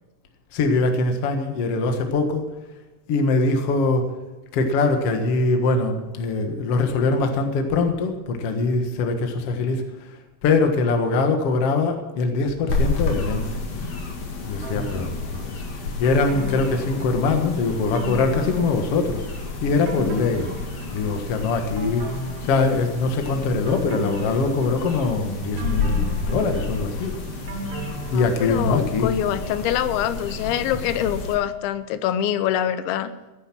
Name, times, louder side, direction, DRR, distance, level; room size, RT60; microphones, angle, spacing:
voice 1, 0.5-2.4 3.1-4.1 4.5-9.8 10.4-13.6 14.4-15.6 16.0-19.2 19.6-20.5 20.9-22.1 22.4-27.1 28.1-29.1 30.7-30.9, left 3 dB, 70° left, 5 dB, 1.4 m, -22 dB
sound 1, 12.7-31.3, left 3 dB, 45° left, 2.6 m, -30 dB
sound 2, 14.6-15.4 16.0-17.5 18.0-19.3 19.6-21.3 21.8-23.1 23.7-25.1 25.6-28.8 29.2-29.3, right 1 dB, 65° right, 4.1 m, -36 dB
voice 2, 28.1-33.1, left 10 dB, 85° left, 13 dB, 3.1 m, -25 dB
16.0 x 9.9 x 6.1 m, 1.1 s
omnidirectional pair, 5.2 m